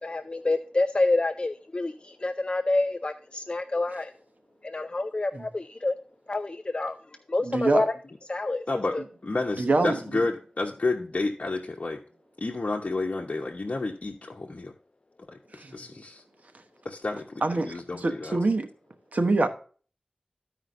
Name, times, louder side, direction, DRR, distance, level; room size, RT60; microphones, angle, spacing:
voice 1, 0.0-4.1 4.6-6.0 6.3-7.0 7.3-7.9 8.3-8.6 8.9-9.0, left 2 dB, 40° left, 0.4 m, -27 dB
voice 2, 7.4-7.8 9.6-10.0 15.5-15.8 17.4-18.7 19.1-19.5, right 2 dB, 75° right, 1.0 m, -25 dB
voice 3, 8.7-12.0 12.4-14.7 15.3-16.2 16.8-18.4, left 3 dB, 60° left, 0.9 m, -31 dB
14.5 x 5.0 x 2.5 m
wide cardioid pair, 50°, 3 cm